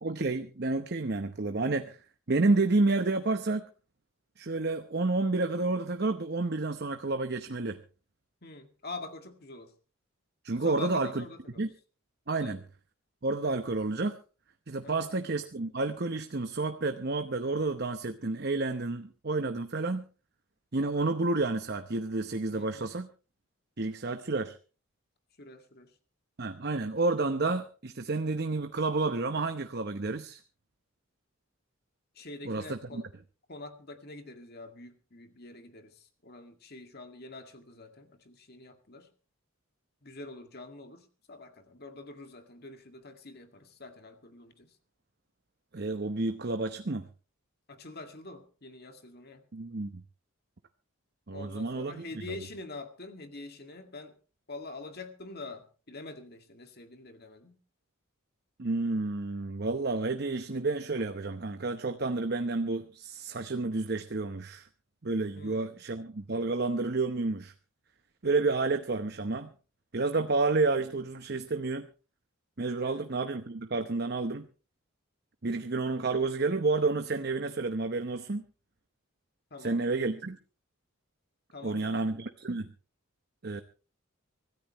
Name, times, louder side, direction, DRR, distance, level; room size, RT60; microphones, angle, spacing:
voice 1, 0.0-2.0 2.3-3.6 4.4-7.8 10.4-11.2 11.6-11.7 12.3-12.6 13.2-14.2 14.7-20.0 20.7-23.1 23.8-24.6 26.4-30.4 32.4-33.0 45.7-47.1 49.5-50.0 51.3-52.2 58.6-64.7 65.0-67.5 68.2-69.5 69.9-71.9 72.6-74.5 75.4-78.4 79.6-80.4 81.6-82.7 83.4-83.6, right 3 dB, 50° right, 8 dB, 0.9 m, -30 dB
voice 2, 8.4-9.7 10.6-11.7 12.4-12.6 14.8-15.1 22.5-22.9 25.4-25.9 32.1-33.1 33.5-39.1 40.0-44.8 47.7-49.5 51.3-54.1 54.5-57.6 65.3-65.9 72.8-73.1 79.5-79.9 81.5-82.1, left 3 dB, 45° left, 6 dB, 2.0 m, -45 dB
25.0 x 14.0 x 3.1 m, 0.35 s
head